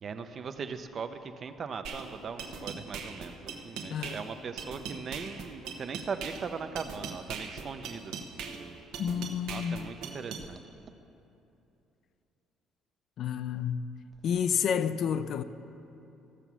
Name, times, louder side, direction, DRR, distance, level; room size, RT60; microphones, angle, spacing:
voice 1, 0.0-8.9 9.5-10.6, right 5 dB, 40° right, 0.6 m, -40 dB
sound 1, 1.8-10.4, right 5 dB, 85° right, 1.0 m, -40 dB
voice 2, 9.0-9.8 13.2-13.9 14.2-15.4, left 8 dB, 55° left, 0.4 m, -30 dB
14.0 x 6.9 x 6.1 m
cardioid pair, 140°, 0 cm